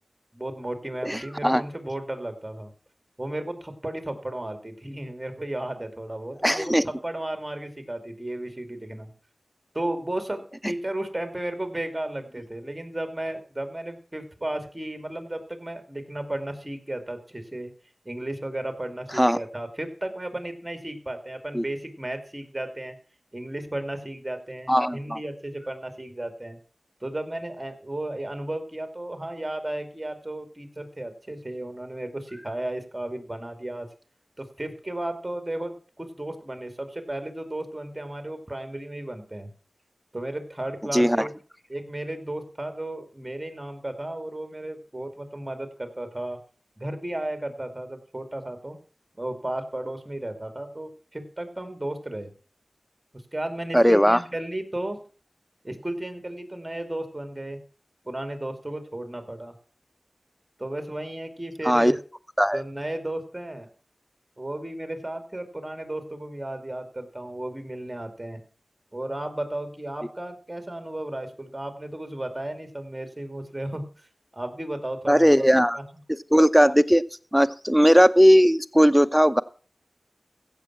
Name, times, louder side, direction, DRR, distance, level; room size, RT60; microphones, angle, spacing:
voice 1, 0.3-2.7 3.2-9.1 9.7-17.7 18.0-23.0 23.3-26.6 27.0-33.9 34.4-39.5 40.1-41.3 41.7-46.4 46.8-48.8 49.2-52.3 53.3-55.0 55.6-57.6 58.0-59.5 60.6-62.0 62.5-63.7 64.4-68.4 68.9-73.9 74.3-75.8, right 1 dB, 20° right, 7 dB, 2.5 m, -34 dB
voice 2, 1.0-1.6 6.4-6.8 19.1-19.4 21.5-21.6 24.7-25.2 40.9-41.3 53.7-54.2 61.6-61.9 62.4-62.6 75.1-75.8 76.3-77.0 77.3-79.4, equal, ahead, 13 dB, 0.8 m, -18 dB
15.5 x 7.1 x 6.0 m, 0.40 s
wide cardioid pair, 55°, 0 cm